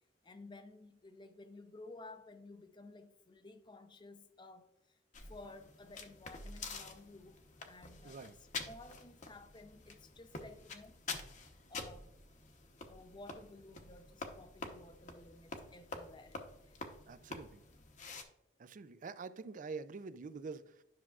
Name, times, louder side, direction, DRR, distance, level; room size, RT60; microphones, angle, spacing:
voice 1, 0.2-11.0 11.7-12.1 12.9-16.4 16.7-16.8, left 2 dB, 25° left, 0.6 m, -55 dB
sound 1, 5.1-18.2, left 3 dB, 45° left, 0.9 m, -48 dB
voice 2, 8.0-8.4 17.1-17.6 18.6-20.8, right 4 dB, 45° right, 0.4 m, -46 dB
10.5 x 6.0 x 2.4 m
head